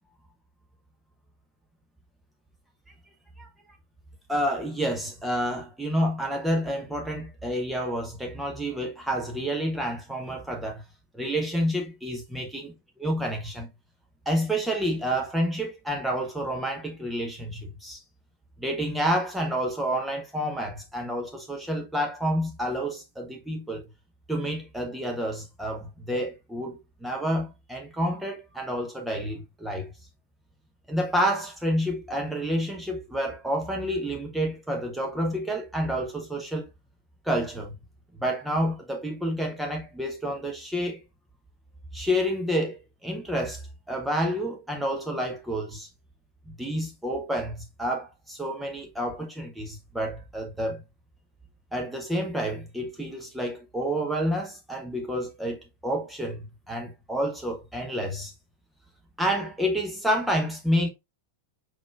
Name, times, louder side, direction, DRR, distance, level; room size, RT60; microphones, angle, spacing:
voice 1, 4.3-10.8 11.1-12.7 13.0-13.7 14.3-18.0 18.6-23.9 24.3-29.9 30.9-36.7 37.2-37.7 38.2-41.0 41.9-45.9 46.5-50.8 51.7-58.3 59.2-60.9, equal, 5° right, 0.8 m, -29 dB
4.6 x 4.0 x 2.4 m
figure-of-eight pair, 90°, 0 cm